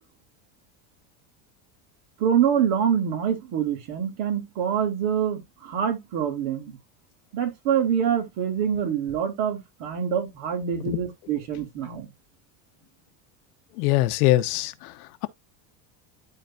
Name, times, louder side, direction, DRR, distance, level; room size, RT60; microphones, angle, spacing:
voice 1, 2.2-6.8 7.3-12.1, right 8 dB, 70° right, 3.3 m, -25 dB
voice 2, 13.8-15.3, left 16 dB, 80° left, 1.0 m, -23 dB
12.0 x 4.0 x 2.6 m
supercardioid pair, 115°, 44 cm